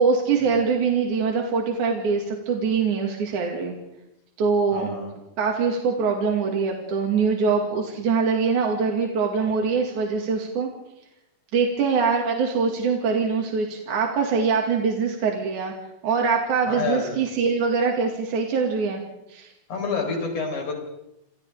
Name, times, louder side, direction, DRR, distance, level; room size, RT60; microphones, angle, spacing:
voice 1, 0.0-3.8 4.4-5.0 5.4-10.7 11.5-15.7 16.0-19.0 19.3-19.5, right 5 dB, 75° right, 1 dB, 3.6 m, -23 dB
voice 2, 4.7-5.1 16.7-17.1 19.7-20.7, left 4 dB, 75° left, 2 dB, 5.8 m, -28 dB
28.0 x 28.0 x 3.6 m, 0.88 s
omnidirectional pair, 3.6 m